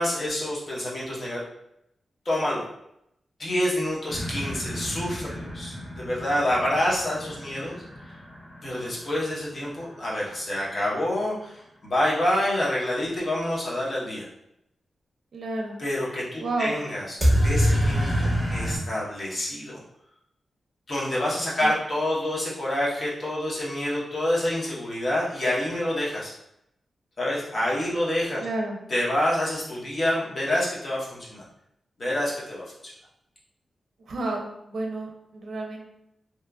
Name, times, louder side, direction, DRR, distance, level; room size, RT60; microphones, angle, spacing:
voice 1, 0.0-1.4 2.2-2.6 3.4-7.8 8.6-14.3 15.8-17.2 17.4-19.8 20.9-26.3 27.2-28.4 28.9-31.4 32.0-32.9, left 1 dB, 45° left, -6 dB, 0.8 m, -27 dB
sound 1, 4.1-9.8 17.2-18.8, equal, ahead, 0.8 m, -27 dB
voice 2, 15.3-15.8 16.4-16.8 21.6-21.7 28.4-28.8 34.0-35.9, right 2 dB, 70° right, 0 dB, 0.5 m, -31 dB
2.8 x 2.3 x 2.2 m, 0.81 s
wide cardioid pair, 105°, 0 cm